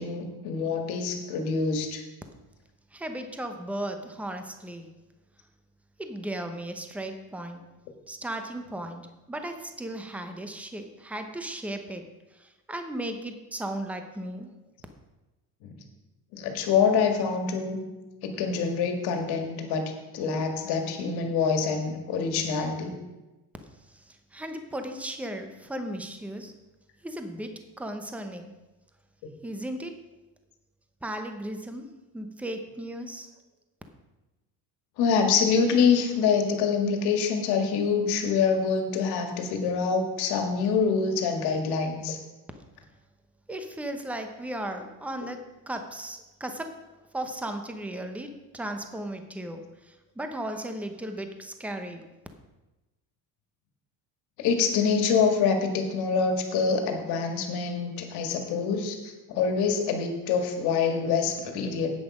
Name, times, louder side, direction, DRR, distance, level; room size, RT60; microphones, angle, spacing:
voice 1, 0.0-2.0 15.6-15.7 16.3-17.8 18.2-19.8 20.1-23.0 35.0-42.2 54.4-61.9, left 5 dB, 75° left, 4 dB, 1.9 m, -25 dB
voice 2, 2.9-4.9 6.0-7.6 8.1-14.5 23.9-26.5 27.0-28.5 29.4-30.0 31.0-31.9 32.1-33.3 43.5-46.7 47.1-52.1, right 1 dB, 5° right, 6 dB, 0.8 m, -36 dB
10.0 x 8.6 x 4.9 m, 1.1 s
cardioid pair, 145°, 39 cm